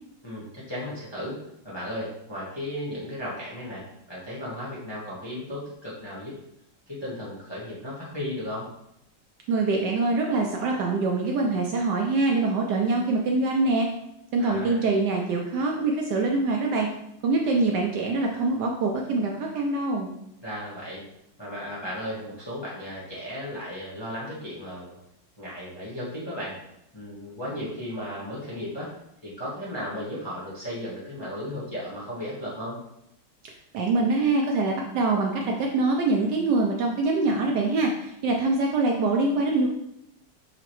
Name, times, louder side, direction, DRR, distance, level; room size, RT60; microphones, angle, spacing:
voice 1, 0.2-6.3 6.9-8.7 14.4-14.8 20.4-21.0 21.4-25.0 25.4-26.6 26.9-29.0 29.2-32.8, left 1 dB, 20° left, -7 dB, 0.8 m, -35 dB
voice 2, 9.5-13.9 14.3-16.9 17.2-20.1 33.7-39.7, right 3 dB, 70° right, 0 dB, 1.1 m, -24 dB
5.7 x 3.0 x 3.0 m, 0.80 s
omnidirectional pair, 2.1 m